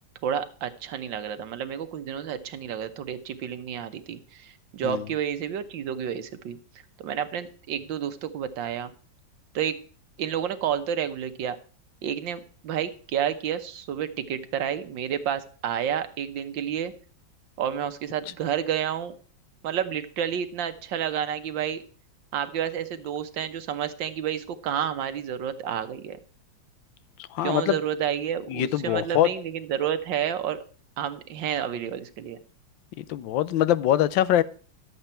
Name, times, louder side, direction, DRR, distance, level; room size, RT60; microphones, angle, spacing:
voice 1, 0.2-6.6 7.0-8.9 9.5-9.8 10.2-11.6 12.0-16.9 17.6-19.1 19.6-21.8 22.3-26.2 27.4-30.6 31.0-32.4, right 9 dB, 80° right, 1.7 m, -30 dB
voice 2, 27.3-27.8 28.5-29.3 33.0-34.4, left 12 dB, 90° left, 1.4 m, -23 dB
12.0 x 8.0 x 4.3 m
omnidirectional pair, 2.0 m